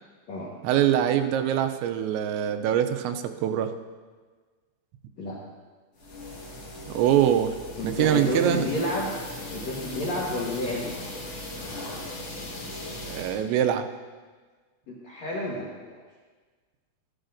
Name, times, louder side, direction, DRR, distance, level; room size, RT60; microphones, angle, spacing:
voice 1, 0.6-3.7 6.9-7.6 7.8-8.6 13.1-13.9, right 10 dB, 85° right, 7 dB, 2.8 m, -23 dB
sound 1, 5.9-13.4, left 1 dB, 50° left, 1.9 m, -38 dB
voice 2, 7.8-9.1 9.5-10.8 14.9-15.9, left 1 dB, 85° left, -5 dB, 1.5 m, -30 dB
13.5 x 11.0 x 2.6 m, 1.4 s
omnidirectional pair, 5.3 m